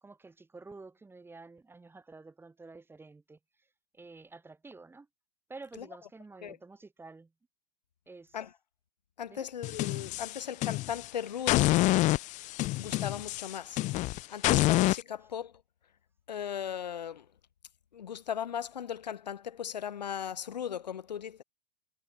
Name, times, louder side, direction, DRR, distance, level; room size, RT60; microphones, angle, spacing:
voice 1, 0.0-3.7 3.9-5.1 5.5-7.3 8.1-8.4 9.3-9.5, right 3 dB, 10° right, 2.7 m, -50 dB
voice 2, 9.2-11.8 12.8-13.8 14.3-15.5 16.3-17.3 17.9-21.4, left 8 dB, 85° left, 1.6 m, -37 dB
sound 1, 9.6-11.1 11.5-15.0, left 19 dB, 35° left, 0.5 m, -27 dB
hypercardioid pair, 100°, 21 cm